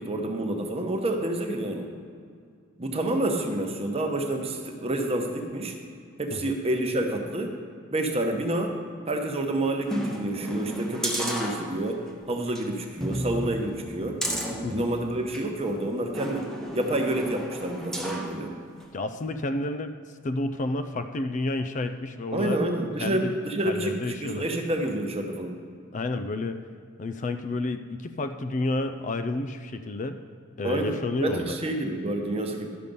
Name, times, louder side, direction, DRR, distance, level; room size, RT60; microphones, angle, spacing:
voice 1, 0.0-1.9 2.8-5.7 6.2-7.5 7.9-8.7 9.1-12.0 12.3-14.2 14.7-16.5 16.7-18.5 22.3-25.5 30.6-32.7, right 1 dB, 30° right, 3 dB, 1.0 m, -28 dB
sound 1, 9.9-12.1 12.5-12.6 13.0-15.5 16.1-18.3 18.8-18.9, right 1 dB, 5° left, 0.9 m, -33 dB
voice 2, 18.9-22.6 23.0-23.3 23.6-24.6 25.9-26.6 27.0-30.2 30.6-31.6, left 2 dB, 35° left, 9 dB, 0.4 m, -30 dB
12.0 x 6.7 x 5.4 m, 2.2 s
head